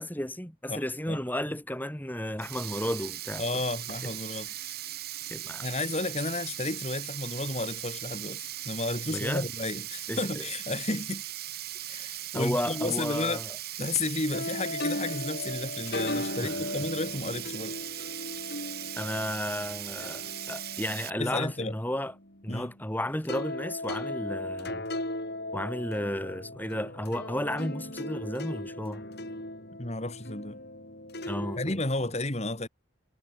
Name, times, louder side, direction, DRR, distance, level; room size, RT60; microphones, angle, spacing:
voice 1, 0.0-3.4 4.0-4.1 5.3-5.6 9.1-9.4 10.1-10.4 12.3-13.4 16.4-16.5 19.0-22.1 22.4-24.8 25.5-29.0 31.3-31.8, left 1 dB, 10° left, 2.7 m, -33 dB
voice 2, 0.7-1.2 3.4-4.5 5.6-11.2 11.9-13.4 13.8-17.8 21.2-21.8 22.5-22.7 29.8-30.6 31.6-32.7, left 2 dB, 30° left, 2.6 m, -32 dB
Sink (filling or washing), 2.4-21.1, right 13 dB, 45° right, 1.9 m, -39 dB
sound 1, 14.3-22.9 23.2-31.7, left 1 dB, 50° left, 5.4 m, -37 dB
head